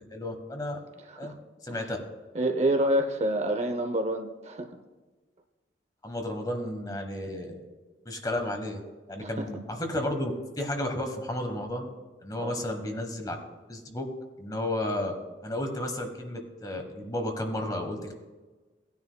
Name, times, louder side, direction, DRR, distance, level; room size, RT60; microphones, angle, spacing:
voice 1, 0.1-0.8 1.2-1.3 1.6-2.0 6.0-7.5 8.0-8.8 9.1-11.9 12.2-13.4 13.7-14.1 14.4-15.1 15.4-18.1, left 1 dB, 20° left, 4 dB, 1.3 m, -32 dB
voice 2, 2.3-4.7 9.2-9.4 12.4-12.6, right 1 dB, 35° right, 5 dB, 0.7 m, -27 dB
18.0 x 9.6 x 2.3 m, 1.3 s
head